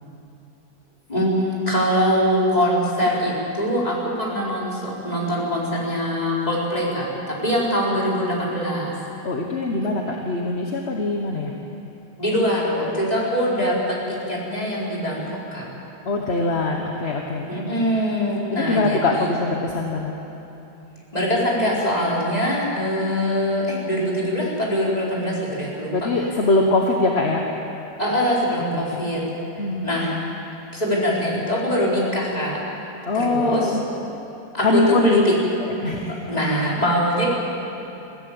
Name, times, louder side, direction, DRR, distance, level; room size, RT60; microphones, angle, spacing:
voice 1, 1.1-8.9 12.2-15.6 17.5-19.3 21.1-26.1 28.0-29.2 29.5-30.2 30.7-32.6 33.1-33.7 34.5-35.3 36.3-37.3, equal, 20° left, -5 dB, 4.7 m, -23 dB
voice 2, 9.2-11.5 16.0-17.5 18.5-20.2 25.9-27.4 28.7-29.0 29.6-29.9 33.0-33.8 34.6-35.2 35.6-36.3, left 2 dB, 35° left, 1 dB, 1.3 m, -22 dB
22.0 x 16.0 x 8.6 m, 3.0 s
omnidirectional pair, 2.1 m